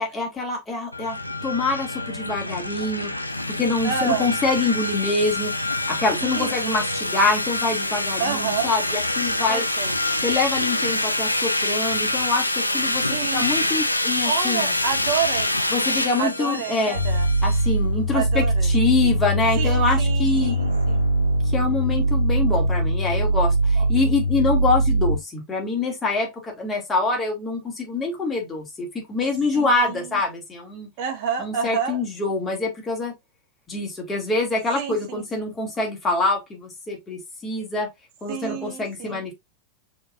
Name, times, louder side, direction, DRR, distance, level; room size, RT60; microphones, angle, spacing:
voice 1, 0.0-3.1 3.6-5.5 5.9-9.7 10.2-14.7 15.7-17.0 17.4-20.6 21.5-30.9 31.4-33.1 33.7-37.9 38.2-39.3, left 3 dB, 15° left, 1.7 m, -25 dB
sound 1, 0.9-17.7, left 1 dB, 85° left, 0.6 m, -26 dB
voice 2, 3.8-4.3 6.4-6.8 8.2-8.7 9.5-9.9 13.1-13.7 14.2-15.6 16.2-17.3 18.1-18.7 19.6-21.1 23.8-23.9 29.5-30.0 31.0-32.0 34.7-35.5 38.3-39.2, right 7 dB, 45° right, 1.1 m, -29 dB
sound 2, 16.9-25.2, right 1 dB, 90° right, 1.0 m, -21 dB
6.3 x 3.2 x 2.4 m
figure-of-eight pair, 90°, 0 cm